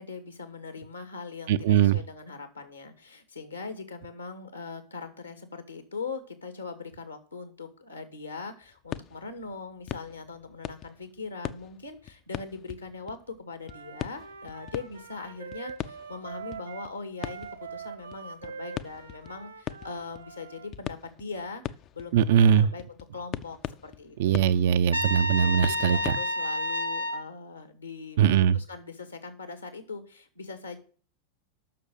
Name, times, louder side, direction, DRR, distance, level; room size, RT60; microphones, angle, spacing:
voice 1, 0.0-24.5 25.4-28.2 28.5-30.8, left 4 dB, 80° left, 2.2 m, -41 dB
voice 2, 1.5-2.0 22.1-22.7 24.2-26.0 28.2-28.6, right 9 dB, 55° right, 0.5 m, -21 dB
sound 1, 8.6-13.4 13.6-26.1, left 11 dB, 35° left, 0.5 m, -41 dB
Wind instrument woodwind instrument, 13.6-20.7, right 6 dB, 70° right, 1.4 m, -43 dB
Trumpet, 24.9-27.2, left 1 dB, 90° right, 1.1 m, -29 dB
7.5 x 6.4 x 7.4 m
figure-of-eight pair, 90°, 0 cm